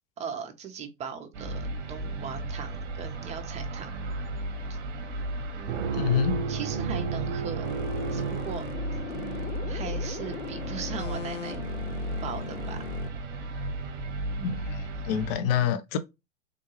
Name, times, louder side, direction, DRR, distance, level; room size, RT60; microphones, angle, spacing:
voice 1, 0.2-4.0 4.7-4.8 5.5-6.0 6.5-7.7 8.1-9.0 9.7-11.7 12.2-12.9, right 6 dB, 20° right, 0.5 m, -39 dB
sound 1, 1.3-15.4, right 1 dB, 40° right, 0.8 m, -35 dB
sound 2, 5.7-9.2, right 6 dB, 65° right, 0.5 m, -33 dB
voice 2, 5.9-6.4 14.4-16.0, left 8 dB, 50° left, 0.5 m, -27 dB
sound 3, 7.6-13.1, left 6 dB, 85° left, 0.7 m, -39 dB
3.7 x 2.2 x 3.0 m
hypercardioid pair, 105°, 38 cm